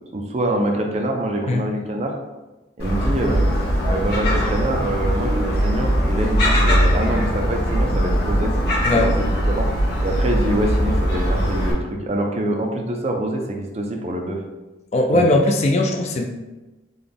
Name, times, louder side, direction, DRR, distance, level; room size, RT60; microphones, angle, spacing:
voice 1, 0.1-2.1 2.8-3.4 3.8-8.5 8.9-9.7 10.0-14.4 15.1-15.4, right 1 dB, 35° right, 2 dB, 0.4 m, -25 dB
Gull seagull, 2.8-11.7, equal, 55° left, 1.3 m, -20 dB
voice 2, 14.9-16.2, left 1 dB, 35° left, 3 dB, 0.3 m, -19 dB
3.9 x 2.3 x 3.4 m, 1.1 s
head